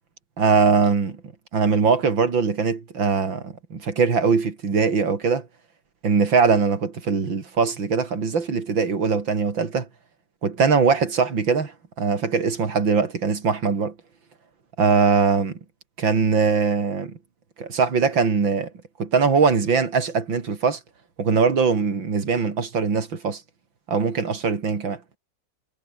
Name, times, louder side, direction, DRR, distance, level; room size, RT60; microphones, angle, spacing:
voice 1, 0.4-1.2 1.5-5.5 6.0-9.9 10.4-13.9 14.8-15.6 16.0-17.2 17.6-18.7 19.0-20.8 21.2-23.4 23.9-25.0, right 5 dB, 85° right, 3.7 m, -21 dB
omnidirectional pair, 2.0 m